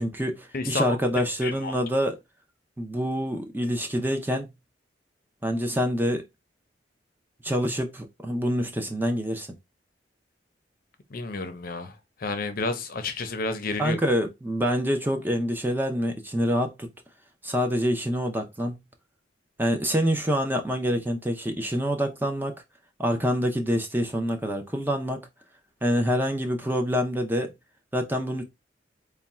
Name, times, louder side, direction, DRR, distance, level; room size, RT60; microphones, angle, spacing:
voice 1, 0.0-2.2 2.8-4.5 5.4-6.2 7.4-9.5 13.8-16.9 17.4-18.8 19.6-22.5 23.0-25.3 25.8-27.5 27.9-28.4, equal, 10° right, 0.6 m, -26 dB
voice 2, 0.5-1.0 1.4-1.7 11.1-11.9 12.2-14.0, left 3 dB, 55° left, 0.6 m, -30 dB
3.5 x 2.2 x 4.2 m
head